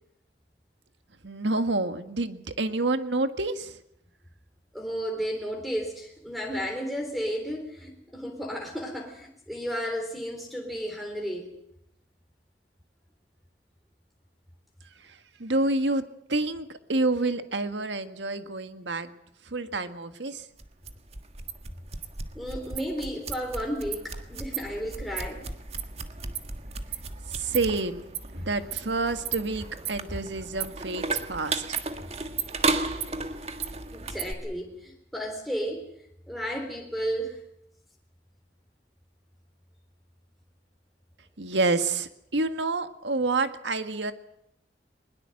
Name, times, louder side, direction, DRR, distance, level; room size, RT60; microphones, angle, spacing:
voice 1, 1.2-3.8 15.0-16.0 16.3-19.1 19.5-20.5 27.3-28.0 28.3-31.8 41.4-44.1, right 2 dB, 90° right, 9 dB, 1.7 m, -28 dB
voice 2, 4.7-11.5 22.4-25.5 28.4-28.5 33.9-35.9 36.3-37.4, equal, ahead, 3 dB, 3.5 m, -33 dB
sound 1, 20.6-34.3, right 4 dB, 35° right, 1.6 m, -34 dB
21.5 x 21.5 x 7.8 m, 0.78 s
head